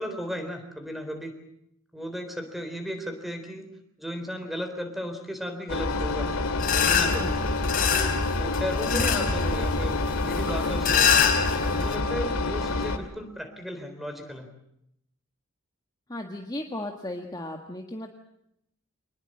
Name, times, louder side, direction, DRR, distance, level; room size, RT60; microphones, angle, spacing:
voice 1, 0.0-1.3 1.9-3.7 4.0-6.3 6.7-7.4 7.9-11.1 11.7-14.5, equal, ahead, 7 dB, 3.8 m, -35 dB
Engine, 5.7-13.0, left 3 dB, 65° left, 2.5 m, -28 dB
sound 1, 6.6-12.0, left 6 dB, 40° left, 3.8 m, -26 dB
voice 2, 16.1-18.1, left 1 dB, 20° left, 3 dB, 1.7 m, -35 dB
25.5 x 21.0 x 7.7 m, 0.77 s
head